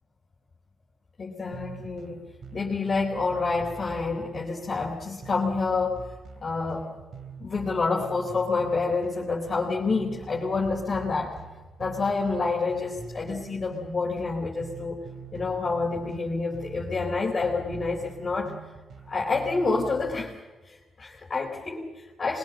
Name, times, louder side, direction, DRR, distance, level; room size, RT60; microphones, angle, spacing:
voice 1, 1.2-2.2 2.5-6.0 6.4-6.9 7.4-11.4 11.8-15.0 15.3-18.5 19.1-20.3 20.7-22.4, left 4 dB, 30° left, -3 dB, 3.9 m, -28 dB
sound 1, 1.5-20.4, right 6 dB, 55° right, 2.8 m, -45 dB
25.5 x 22.5 x 8.0 m, 1.2 s
cardioid pair, 145°, 0 cm